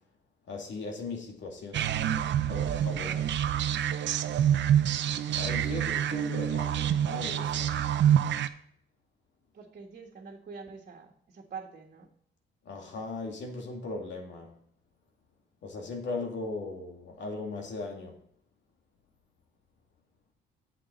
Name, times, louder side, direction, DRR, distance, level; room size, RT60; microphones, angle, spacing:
voice 1, 0.5-1.9 2.5-3.4 5.3-7.8 12.7-14.6 15.6-18.2, left 3 dB, 65° left, 2.4 m, -38 dB
sound 1, 1.7-8.5, right 10 dB, 65° right, 0.7 m, -27 dB
voice 2, 4.2-4.6 5.4-5.8 9.5-12.1, right 5 dB, 45° right, 1.7 m, -46 dB
8.7 x 7.6 x 3.9 m
cardioid pair, 90°, 20 cm